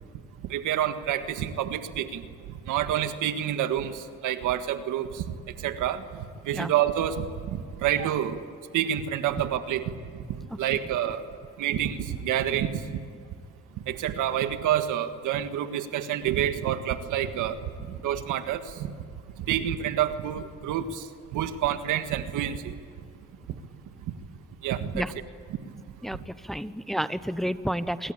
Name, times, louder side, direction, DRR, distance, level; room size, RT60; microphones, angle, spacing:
voice 1, 0.5-2.2 2.7-5.2 5.6-8.4 8.7-9.8 10.6-11.2 11.6-13.0 13.9-18.9 19.5-21.1 21.3-22.8 24.6-25.1, right 10 dB, 90° right, 9 dB, 1.7 m, -28 dB
voice 2, 26.0-28.1, equal, ahead, 13 dB, 0.9 m, -30 dB
26.0 x 22.5 x 8.8 m, 2.3 s
cardioid pair, 90°, 30 cm